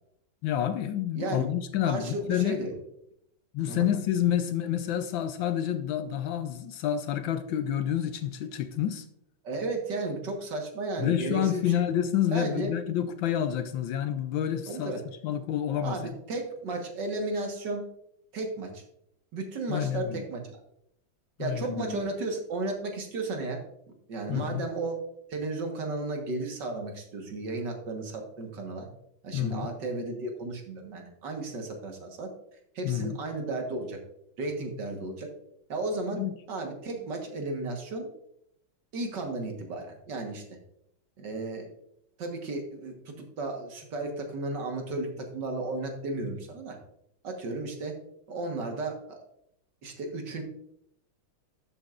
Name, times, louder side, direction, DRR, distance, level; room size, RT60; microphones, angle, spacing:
voice 1, 0.4-2.6 3.5-9.1 11.0-14.9 15.2-16.2 19.7-20.2 21.4-22.0 24.3-24.6 29.3-29.7 32.8-33.2 36.1-36.3, left 10 dB, 75° left, 1.3 m, -29 dB
voice 2, 1.8-2.7 3.7-3.9 9.4-11.7 12.3-12.7 14.7-15.0 15.8-17.8 18.3-18.8 19.3-20.6 21.4-23.6 24.1-25.0 25.3-28.9 29.2-32.3 32.8-34.0 34.4-35.3 35.7-36.2 36.5-38.1 38.9-40.4 41.2-41.7 42.2-46.8 47.2-47.9 48.3-49.2 49.8-50.4, right 2 dB, 60° right, 2.0 m, -34 dB
12.5 x 7.5 x 2.5 m
omnidirectional pair, 2.3 m